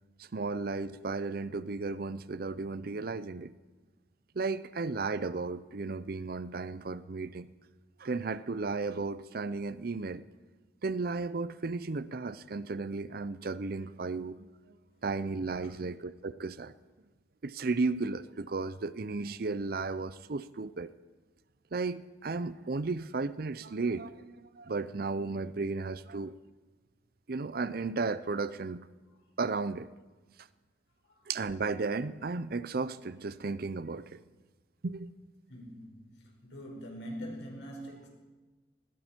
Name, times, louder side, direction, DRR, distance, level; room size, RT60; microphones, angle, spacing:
voice 1, 0.2-3.5 4.3-7.5 8.0-10.2 10.8-14.5 15.0-16.7 17.4-20.9 21.7-26.4 27.3-28.9 29.4-29.9 31.3-34.2 34.8-35.1, right 3 dB, 55° right, 0.6 m, -34 dB
voice 2, 35.5-38.1, equal, 80° left, 5.3 m, -44 dB
20.0 x 15.5 x 4.5 m
head